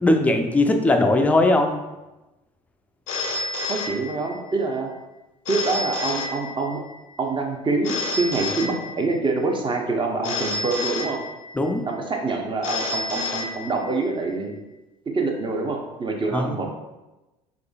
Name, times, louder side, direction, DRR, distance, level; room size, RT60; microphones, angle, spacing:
voice 1, 0.0-1.7 11.5-11.8 16.3-16.6, left 2 dB, 10° left, 4 dB, 0.4 m, -19 dB
Telephone, 3.1-4.6 5.5-7.0 7.8-9.3 10.2-11.7 12.6-14.1, left 2 dB, 85° left, 0.4 m, -30 dB
voice 2, 3.6-4.9 5.5-6.8 7.2-11.2 11.9-14.5 15.1-16.7, right 3 dB, 30° right, 2 dB, 0.7 m, -25 dB
3.7 x 3.1 x 2.3 m, 1.0 s
hypercardioid pair, 70°, 17 cm